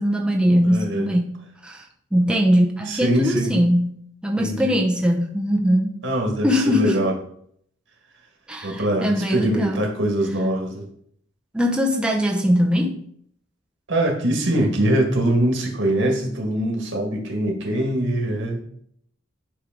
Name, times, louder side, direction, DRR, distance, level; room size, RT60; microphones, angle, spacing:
voice 1, 0.0-1.9 2.1-5.9 6.4-7.0 8.5-9.8 11.5-13.0, equal, 5° right, 0 dB, 0.8 m, -21 dB
voice 2, 0.6-1.1 2.9-3.6 4.4-4.7 6.0-7.1 8.6-10.9 13.9-18.6, right 1 dB, 85° right, 1 dB, 1.9 m, -23 dB
10.0 x 3.4 x 5.2 m, 0.65 s
head